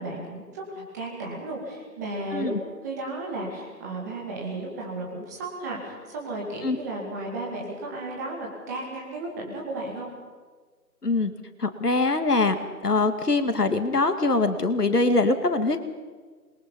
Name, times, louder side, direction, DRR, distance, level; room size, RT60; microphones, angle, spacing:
voice 1, 0.0-2.5 2.8-10.1, right 2 dB, 10° right, -2 dB, 2.3 m, -34 dB
voice 2, 11.6-15.8, left 3 dB, 65° left, 8 dB, 2.4 m, -23 dB
26.5 x 22.0 x 5.5 m, 1.4 s
figure-of-eight pair, 160°, 49 cm